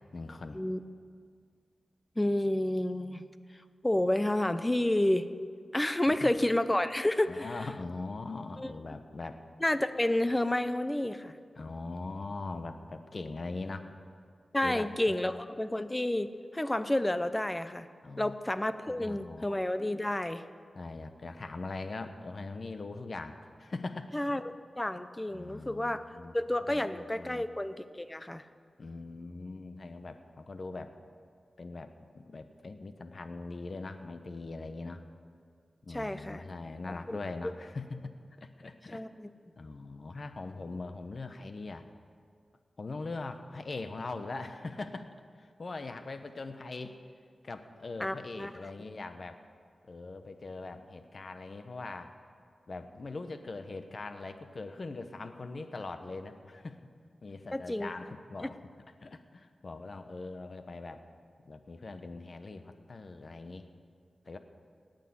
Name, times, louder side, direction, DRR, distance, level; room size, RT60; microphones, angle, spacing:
voice 1, 0.1-0.6 6.1-6.3 7.3-9.4 11.6-13.9 14.6-15.3 18.0-18.4 18.9-19.4 20.7-24.1 25.3-26.3 26.7-27.5 28.8-30.9 31.6-35.0 35.8-39.1 39.6-41.9 42.8-45.1 45.4-47.0 47.4-49.4 49.9-52.1 52.7-56.8 57.2-58.6 59.0-61.0 61.4-63.6 64.3-64.4, left 3 dB, 50° left, 8 dB, 0.9 m, -41 dB
voice 2, 2.2-3.2 3.8-5.3 5.7-7.5 8.6-8.7 9.6-11.4 14.5-17.9 18.2-20.4 24.1-24.4 24.8-26.0 26.3-28.4 35.9-36.4 36.9-37.2 38.9-39.3 48.0-48.5 57.5-57.9 58.4-58.5, left 1 dB, 15° left, 12 dB, 0.7 m, -30 dB
18.0 x 6.6 x 9.5 m, 2.1 s
wide cardioid pair, 95°, 0 cm